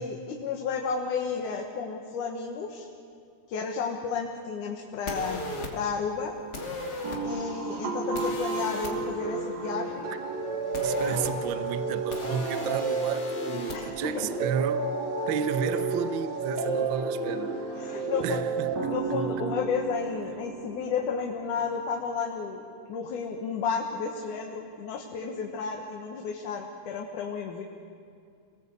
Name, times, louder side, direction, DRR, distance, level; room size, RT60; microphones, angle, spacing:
voice 1, 0.0-2.9 3.5-6.3 7.2-10.1 13.7-14.2 17.7-18.4 18.8-22.6 22.9-27.6, left 5 dB, 85° left, 1 dB, 2.9 m, -32 dB
sound 1, 5.1-5.7 6.5-7.2 8.1-8.9 10.7-11.3 12.1-13.8, left 1 dB, 35° left, 3.1 m, -37 dB
sound 2, 7.0-22.0, right 3 dB, 65° right, 3.3 m, -31 dB
voice 2, 10.8-14.8 15.3-17.6 18.2-19.5, right 8 dB, 80° right, 11 dB, 1.0 m, -32 dB
27.0 x 19.5 x 8.2 m, 2.3 s
omnidirectional pair, 3.5 m